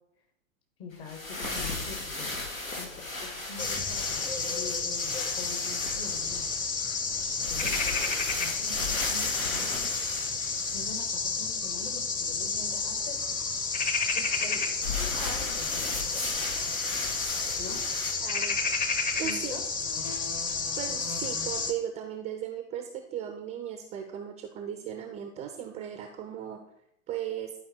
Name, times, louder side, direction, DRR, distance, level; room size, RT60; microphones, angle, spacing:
voice 1, 0.8-2.3 2.8-6.5 7.5-7.8 8.4-9.8 10.7-13.4 14.1-16.7 17.6-17.8 19.2-19.6, left 5 dB, 45° left, 4 dB, 2.1 m, -44 dB
sound 1, 0.9-11.0 14.8-18.1, left 2 dB, 80° left, 1.5 m, -36 dB
sound 2, 3.6-21.7, left 4 dB, 20° left, 0.8 m, -31 dB
voice 2, 18.2-18.6 19.2-19.5 20.8-26.6 27.1-27.5, right 10 dB, 15° right, 6 dB, 0.4 m, -37 dB
11.0 x 4.7 x 4.5 m, 0.77 s
figure-of-eight pair, 90°, 40 cm